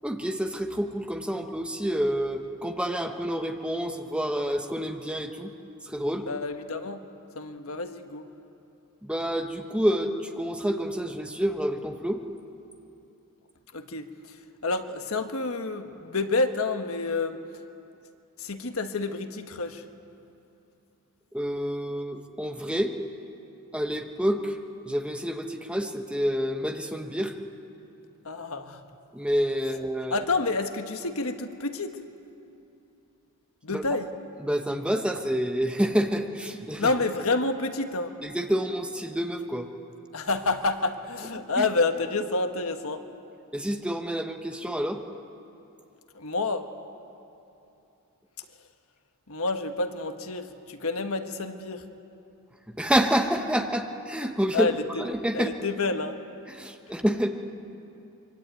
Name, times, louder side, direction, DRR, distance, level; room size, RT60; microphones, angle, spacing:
voice 1, 0.0-5.5 5.8-6.3 9.0-12.2 21.3-22.9 23.7-24.6 24.8-27.3 29.1-30.1 33.7-33.8 34.4-36.9 38.2-39.7 41.6-41.7 43.5-45.0 52.7-54.7 55.0-55.5 56.5-57.3, equal, 5° right, 4 dB, 1.2 m, -28 dB
voice 2, 6.3-7.0 7.3-8.2 13.7-14.4 14.6-17.4 18.4-19.8 28.2-28.8 30.1-32.0 33.6-34.1 36.8-38.1 40.1-43.0 46.1-46.7 49.3-51.8 54.5-55.0 55.3-56.2, left 3 dB, 70° left, 7 dB, 1.4 m, -29 dB
25.0 x 24.5 x 9.1 m, 2.8 s
head